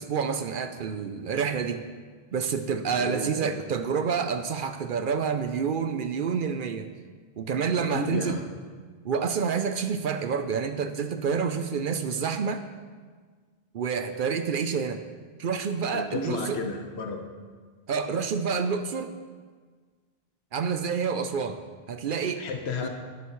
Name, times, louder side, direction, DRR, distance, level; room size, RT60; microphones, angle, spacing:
voice 1, 0.0-1.8 2.3-6.9 7.4-8.4 9.0-12.6 13.7-15.0 15.4-16.6 17.9-19.1 20.5-21.6 21.9-22.5 22.8-22.9, right 6 dB, 60° right, 9 dB, 0.7 m, -28 dB
voice 2, 3.0-3.6 7.7-8.4 15.9-17.2 22.4-22.9, left 4 dB, 85° left, 4 dB, 1.3 m, -33 dB
12.5 x 10.5 x 3.1 m, 1.5 s
omnidirectional pair, 1.1 m